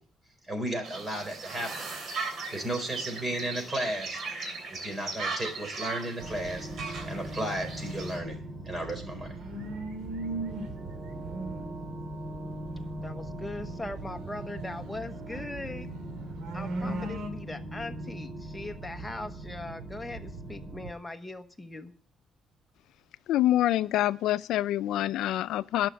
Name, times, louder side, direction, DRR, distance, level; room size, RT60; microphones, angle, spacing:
voice 1, 0.5-1.9 2.5-4.2 4.7-6.7 7.0-8.4 8.6-9.3, right 1 dB, 20° right, 4.4 m, -34 dB
sound 1, 0.8-8.2, right 4 dB, 55° right, 3.0 m, -38 dB
sound 2, 6.2-20.9, right 1 dB, 35° right, 2.4 m, -40 dB
sound 3, 9.0-10.8 11.0-11.6 14.1-15.4 15.9-17.3, right 2 dB, 80° right, 2.2 m, -37 dB
voice 2, 13.0-15.9 16.5-21.9, left 2 dB, 10° left, 1.1 m, -40 dB
voice 3, 23.3-25.9, left 13 dB, 85° left, 0.5 m, -26 dB
12.0 x 6.0 x 9.2 m
cardioid pair, 120°, 0 cm